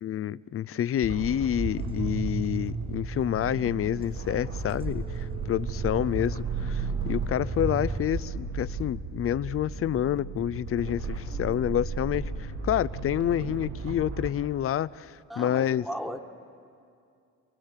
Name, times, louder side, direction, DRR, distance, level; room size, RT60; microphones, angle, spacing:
voice 1, 0.0-15.8, left 11 dB, 50° left, 18 dB, 0.5 m, -28 dB
sound 1, 1.0-14.3, right 4 dB, 60° right, 4.9 m, -34 dB
sound 2, 1.7-8.1, right 4 dB, 20° right, 0.6 m, -37 dB
voice 2, 15.3-16.2, equal, ahead, 5 dB, 1.5 m, -37 dB
27.0 x 18.5 x 7.4 m, 2.4 s
cardioid pair, 90°, 30 cm